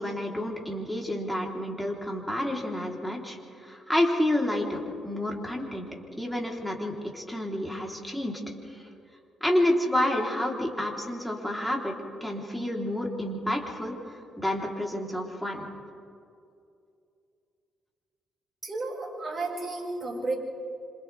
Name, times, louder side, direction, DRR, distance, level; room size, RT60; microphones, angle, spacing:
voice 1, 0.0-8.4 8.7-8.8 9.4-11.9 12.2-15.7, left 1 dB, 5° left, -1 dB, 3.8 m, -29 dB
voice 2, 18.6-20.3, right 3 dB, 30° right, -3 dB, 6.6 m, -32 dB
27.5 x 27.0 x 3.6 m, 2.5 s
cardioid pair, 90°, 0 cm